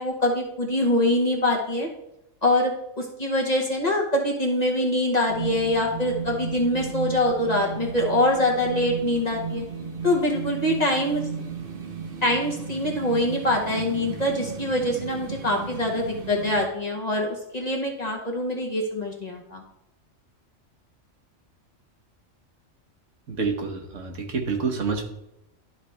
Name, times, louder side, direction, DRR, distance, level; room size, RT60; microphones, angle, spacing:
voice 1, 0.0-1.9 2.4-9.6 10.0-11.2 12.2-19.6, left 1 dB, 35° left, -1 dB, 1.1 m, -24 dB
sound 1, 5.3-16.7, right 5 dB, 45° right, 1.0 m, -35 dB
voice 2, 23.3-25.0, right 4 dB, 65° right, 3 dB, 1.4 m, -28 dB
12.0 x 4.1 x 3.3 m, 0.83 s
omnidirectional pair, 1.4 m